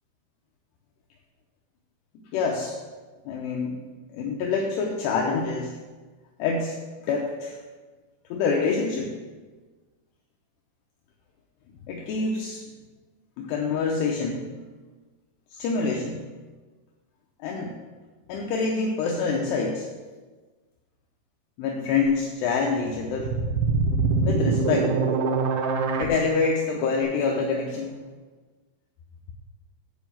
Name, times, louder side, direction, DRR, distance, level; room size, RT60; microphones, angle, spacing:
voice 1, 2.3-2.8 3.3-3.8 4.1-5.8 6.4-6.8 7.0-7.6 8.3-9.1 11.9-12.6 13.4-14.5 15.5-16.3 17.4-17.7 18.3-19.8 21.6-23.3 24.2-25.0 26.0-28.0, left 4 dB, 80° left, 0 dB, 2.5 m, -26 dB
sound 1, 22.8-26.1, right 4 dB, 80° right, 3.1 m, -24 dB
9.3 x 4.8 x 7.2 m, 1.3 s
omnidirectional pair, 5.6 m